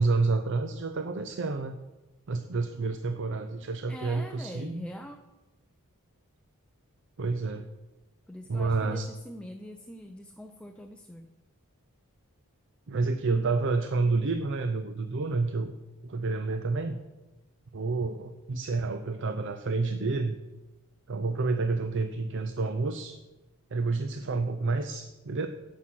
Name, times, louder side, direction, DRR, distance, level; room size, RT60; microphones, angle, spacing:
voice 1, 0.0-1.8 2.3-4.9 7.2-7.7 8.5-9.1 12.9-15.7 16.0-17.0 17.7-20.4 21.1-23.2 23.7-25.5, right 3 dB, 55° right, 8 dB, 0.5 m, -29 dB
voice 2, 3.9-5.2 8.3-11.3, equal, 5° left, 5 dB, 0.4 m, -43 dB
9.8 x 6.1 x 7.6 m, 1.1 s
head